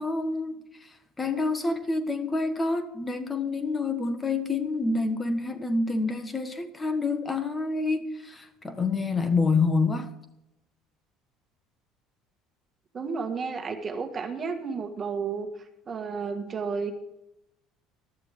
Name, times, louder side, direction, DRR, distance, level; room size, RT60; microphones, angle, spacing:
voice 1, 0.0-10.1, left 3 dB, 20° left, 1.4 m, -27 dB
voice 2, 12.9-15.5 15.9-17.0, right 5 dB, 30° right, 1.7 m, -32 dB
14.0 x 12.5 x 3.6 m
supercardioid pair, 110°, 0 cm